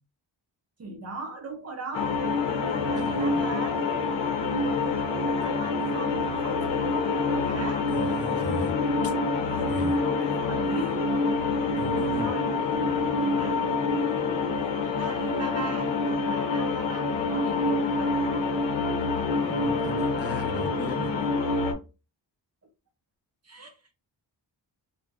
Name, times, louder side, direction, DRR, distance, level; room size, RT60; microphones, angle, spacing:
voice 1, 0.8-2.2 2.5-3.8 5.4-7.9 9.4-11.1 12.1-12.5 13.2-13.6 15.0-18.2 23.4-23.9, right 3 dB, 35° right, 0.5 m, -39 dB
sound 1, 1.9-21.7, left 3 dB, 80° left, 0.7 m, -26 dB
voice 2, 7.9-8.7 9.0-9.1 9.7-10.0 11.8-12.3 19.3-21.2, right 1 dB, 35° left, 0.8 m, -36 dB
2.4 x 2.1 x 3.3 m
wide cardioid pair, 135°, 44 cm